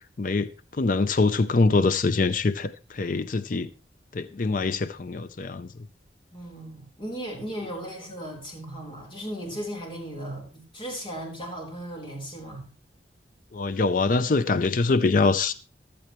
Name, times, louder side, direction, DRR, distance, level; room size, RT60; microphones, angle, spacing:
voice 1, 0.2-0.5 0.8-3.7 4.1-5.7 13.5-15.5, left 3 dB, 45° left, 0.5 m, -24 dB
voice 2, 6.3-12.7, right 1 dB, 30° left, 4.0 m, -36 dB
15.5 x 11.5 x 3.1 m
head